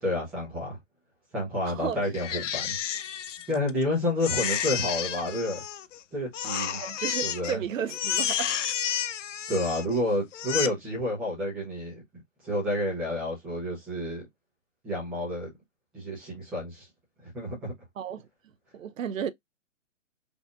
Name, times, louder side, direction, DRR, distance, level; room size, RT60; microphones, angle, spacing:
voice 1, 0.0-0.8 1.3-2.8 3.5-5.6 6.1-6.8 7.2-7.6 9.5-12.0 12.4-14.2 14.8-15.5 15.9-16.9 17.2-17.7, left 1 dB, 5° right, 0.4 m, -29 dB
voice 2, 1.7-2.0 6.8-8.6 18.0-18.3 18.7-19.3, right 8 dB, 85° right, 0.6 m, -33 dB
Crying sobbing, 2.1-3.8 4.2-6.0 6.3-7.6 7.9-10.0 10.3-10.7, left 9 dB, 70° left, 0.5 m, -31 dB
3.8 x 2.5 x 2.3 m
hypercardioid pair, 150°, 38 cm